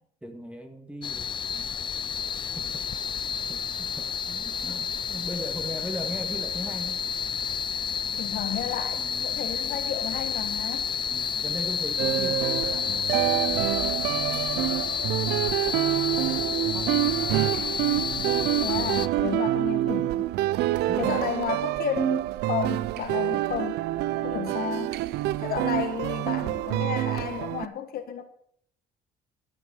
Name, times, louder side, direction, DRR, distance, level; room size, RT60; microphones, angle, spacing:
voice 1, 0.2-1.8 2.6-2.8 3.5-7.0 9.0-9.5 11.1-13.7 14.0-14.7 15.6-17.5 19.2-20.0 20.5-21.3 23.9-24.4, equal, 5° right, 1.9 m, -40 dB
sound 1, 1.0-19.1, left 7 dB, 30° left, 0.4 m, -30 dB
voice 2, 8.2-10.9 18.6-20.3 21.0-23.8 24.2-25.0 25.4-28.2, left 8 dB, 60° left, 1.5 m, -32 dB
sound 2, 12.0-27.7, right 15 dB, 80° right, 0.5 m, -27 dB
12.5 x 7.0 x 6.6 m
cardioid pair, 110°, 17 cm